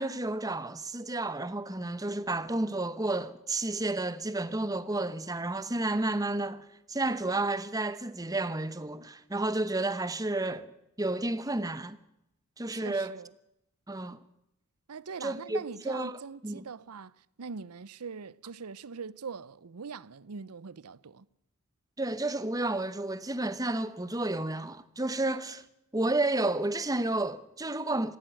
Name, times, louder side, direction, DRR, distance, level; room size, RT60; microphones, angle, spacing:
voice 1, 0.0-10.7 11.0-12.0 12.6-13.1 13.9-14.2 15.2-15.6 15.8-16.7 22.0-25.6 25.9-28.2, right 2 dB, 15° right, 0.9 m, -31 dB
voice 2, 12.7-13.3 14.9-21.3, right 5 dB, 90° right, 0.7 m, -42 dB
18.5 x 15.5 x 9.2 m
head